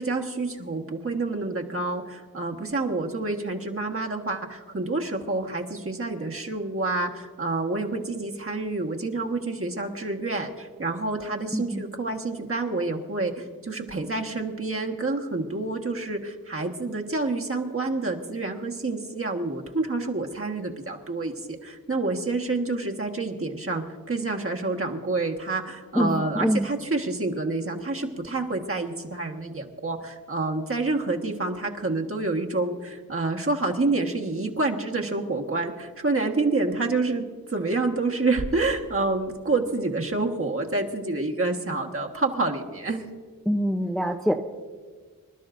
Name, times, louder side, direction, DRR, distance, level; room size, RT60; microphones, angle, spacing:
voice 1, 0.0-43.0, right 3 dB, 40° right, 1 dB, 1.4 m, -28 dB
voice 2, 26.0-26.7 43.5-44.3, equal, ahead, 3 dB, 0.6 m, -24 dB
25.5 x 12.5 x 2.5 m, 1.5 s
wide cardioid pair, 90°, 34 cm